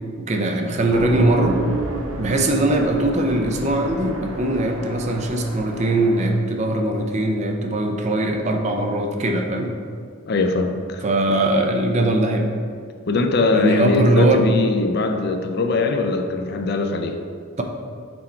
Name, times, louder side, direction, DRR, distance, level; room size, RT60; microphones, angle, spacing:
voice 1, 0.2-1.6 2.2-9.7 11.0-12.5 13.5-14.4, right 2 dB, 35° right, 4 dB, 0.5 m, -21 dB
sound 1, 0.8-6.5, right 1 dB, 85° right, 0.9 m, -30 dB
voice 2, 10.3-11.0 11.3-11.4 13.1-17.2, left 3 dB, 50° left, 5 dB, 0.4 m, -21 dB
6.2 x 4.3 x 4.4 m, 2.2 s
head